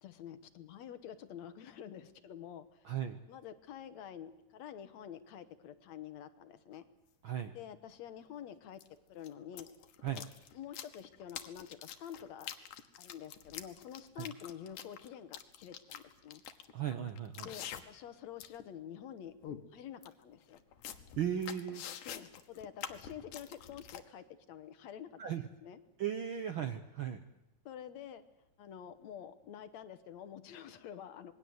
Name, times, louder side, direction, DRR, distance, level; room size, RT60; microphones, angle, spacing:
voice 1, 0.0-2.9 3.3-6.9 7.5-8.8 9.1-9.7 10.1-10.2 10.5-12.5 13.0-16.4 17.4-19.3 19.7-20.6 22.1-25.2 25.6-25.8 27.7-28.2 28.6-31.3, left 9 dB, 70° left, 11 dB, 2.3 m, -48 dB
voice 2, 2.8-3.2 7.2-7.5 10.0-10.3 14.2-14.3 16.7-17.5 21.2-21.8 25.2-25.4 26.0-27.3, right 9 dB, 65° right, 8 dB, 1.3 m, -36 dB
sound 1, 6.8-6.9 8.8-8.9 9.2-18.1 18.4-18.7 19.0-19.1 19.4-19.6 20.0-20.1 20.5-24.0, left 10 dB, 85° left, 2.8 m, -46 dB
27.0 x 21.0 x 8.0 m, 0.93 s
omnidirectional pair, 3.5 m